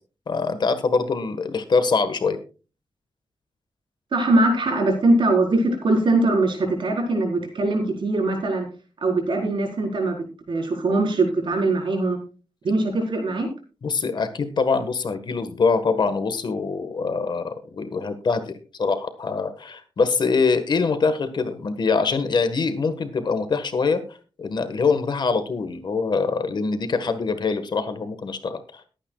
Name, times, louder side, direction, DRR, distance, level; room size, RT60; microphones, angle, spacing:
voice 1, 0.3-2.4 13.8-24.0 24.4-28.8, left 4 dB, 55° left, 9 dB, 1.5 m, -24 dB
voice 2, 4.1-8.7 9.0-12.2 12.6-13.5, right 2 dB, 60° right, 2 dB, 4.6 m, -22 dB
22.0 x 9.3 x 2.4 m, 0.34 s
wide cardioid pair, 160°, 9 cm